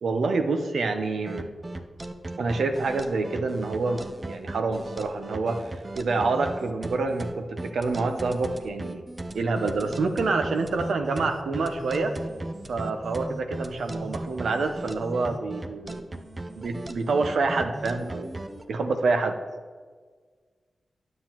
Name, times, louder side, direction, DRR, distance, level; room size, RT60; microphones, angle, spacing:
voice 1, 0.0-1.5 2.4-9.0 9.3-12.1 12.7-16.0 16.6-18.3 18.7-19.4, right 3 dB, 85° right, 6 dB, 0.7 m, -27 dB
sound 1, 1.3-18.6, right 1 dB, 30° right, 0.6 m, -37 dB
9.7 x 7.5 x 2.9 m, 1.5 s
cardioid pair, 75°, 0 cm